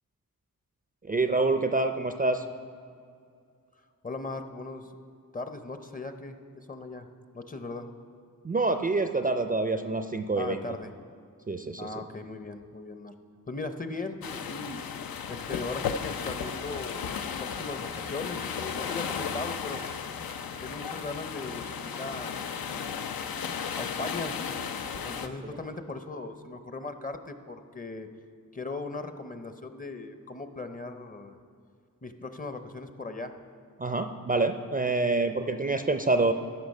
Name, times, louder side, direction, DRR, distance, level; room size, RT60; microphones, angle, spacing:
voice 1, 1.0-2.4 8.4-10.6 11.5-12.0 33.8-36.3, right 3 dB, 25° right, 7 dB, 0.4 m, -26 dB
voice 2, 4.0-4.9 5.3-7.1 7.3-7.9 10.4-10.9 11.8-13.1 13.5-14.2 14.5-14.8 15.3-19.8 20.6-22.7 23.8-24.4 25.0-28.1 28.5-31.4 32.0-33.3, left 3 dB, 25° left, 8 dB, 0.6 m, -38 dB
sound 1, 14.2-25.3, left 7 dB, 85° left, 0.6 m, -35 dB
13.0 x 5.9 x 5.3 m, 2.3 s
wide cardioid pair, 80°, 35 cm